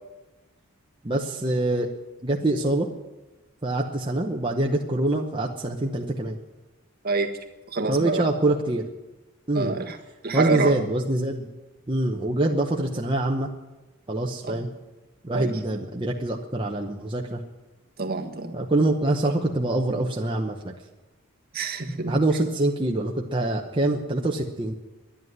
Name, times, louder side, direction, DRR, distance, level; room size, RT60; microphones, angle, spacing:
voice 1, 1.0-1.9 2.2-2.9 3.6-6.4 7.9-8.8 9.5-9.7 10.3-11.5 11.9-13.5 14.1-14.7 15.2-17.4 18.5-20.7 22.1-24.7, right 2 dB, 25° right, 0 dB, 0.9 m, -25 dB
voice 2, 7.0-7.4 7.7-8.3 9.5-10.0 10.2-10.7 14.4-14.6 15.3-15.6 18.0-18.6 21.5-22.2, right 3 dB, 45° right, 4 dB, 1.4 m, -27 dB
11.5 x 10.5 x 9.4 m, 1.1 s
head